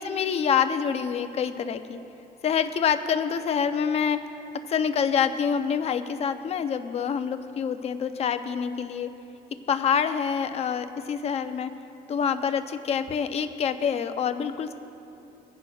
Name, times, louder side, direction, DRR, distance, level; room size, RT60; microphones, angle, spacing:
voice 1, 0.0-2.0 2.4-4.2 4.7-9.1 9.7-11.7 12.1-14.7, left 7 dB, 40° left, 9 dB, 0.6 m, -26 dB
22.0 x 10.5 x 2.4 m, 2.9 s
cardioid pair, 145°, 17 cm